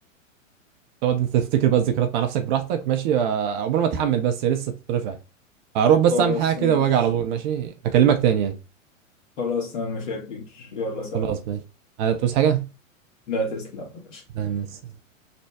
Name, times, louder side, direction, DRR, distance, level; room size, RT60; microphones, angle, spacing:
voice 1, 1.0-5.2 5.7-8.5 11.1-11.6 12.0-12.6 14.3-14.7, right 9 dB, 35° right, 0.6 m, -22 dB
voice 2, 6.1-6.9 9.4-11.3 13.3-14.2, left 3 dB, 65° left, 1.6 m, -29 dB
3.3 x 2.2 x 4.1 m
hypercardioid pair, 110°, 40 cm